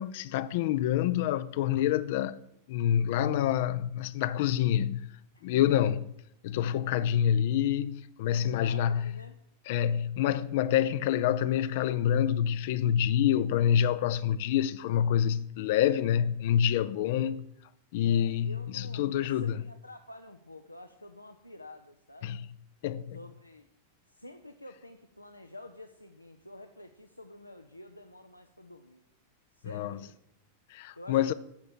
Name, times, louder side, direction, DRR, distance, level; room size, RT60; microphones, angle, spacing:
voice 1, 0.0-2.4 2.7-5.1 5.4-6.0 6.4-9.0 9.7-17.4 17.9-19.6 22.2-22.4 22.8-23.2 29.7-30.0 30.7-31.3, left 10 dB, 50° left, 0.6 m, -27 dB
voice 2, 5.3-5.8 8.5-9.4 18.0-22.4 23.1-23.7 24.1-29.0 29.5-30.2 31.0-31.3, left 1 dB, 85° left, 0.8 m, -49 dB
11.5 x 7.6 x 8.7 m
figure-of-eight pair, 90°, 0 cm